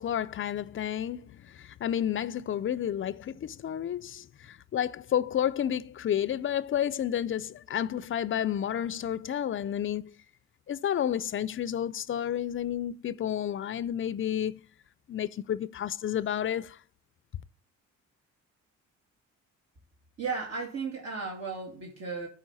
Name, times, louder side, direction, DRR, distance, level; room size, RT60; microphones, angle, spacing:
voice 1, 0.0-10.2 10.7-14.6 15.1-16.8, left 10 dB, 45° left, 0.5 m, -31 dB
voice 2, 20.2-22.3, right 4 dB, 55° right, 2.3 m, -35 dB
12.5 x 4.7 x 4.0 m
cardioid pair, 90°, 30 cm